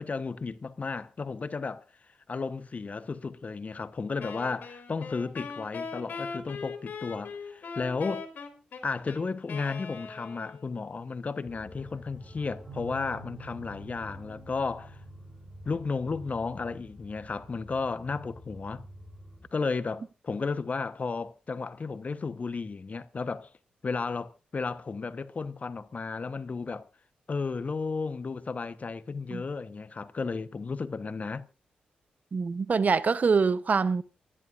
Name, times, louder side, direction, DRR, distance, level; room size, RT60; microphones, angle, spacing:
voice 1, 0.0-1.8 2.3-8.3 8.8-15.0 15.6-18.8 19.5-23.5 23.8-26.9 27.3-31.5, left 4 dB, 45° left, 1.0 m, -33 dB
Wind instrument woodwind instrument, 4.2-10.8, left 5 dB, 65° left, 3.2 m, -40 dB
sound 1, 11.4-19.5, left 1 dB, 15° right, 7.5 m, -48 dB
Bass guitar, 12.7-18.9, right 4 dB, 70° right, 4.6 m, -52 dB
voice 2, 32.3-34.0, right 5 dB, 50° right, 0.7 m, -24 dB
28.5 x 11.0 x 2.5 m
supercardioid pair, 40°, 3 cm